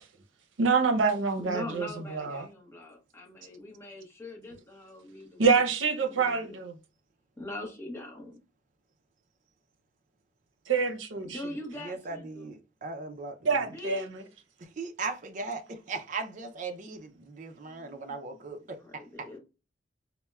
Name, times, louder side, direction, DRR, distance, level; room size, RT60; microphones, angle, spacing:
voice 1, 0.6-2.5 5.4-6.7 10.7-11.4 13.4-14.2, right 5 dB, 80° right, 0.6 m, -26 dB
voice 2, 1.4-5.6 6.1-6.5 7.4-8.4 11.2-12.5 13.7-14.1 17.7-18.2 18.8-19.4, left 1 dB, 15° left, 0.8 m, -42 dB
voice 3, 11.7-13.7 14.6-19.4, right 4 dB, 40° right, 0.4 m, -38 dB
4.2 x 2.0 x 2.2 m
head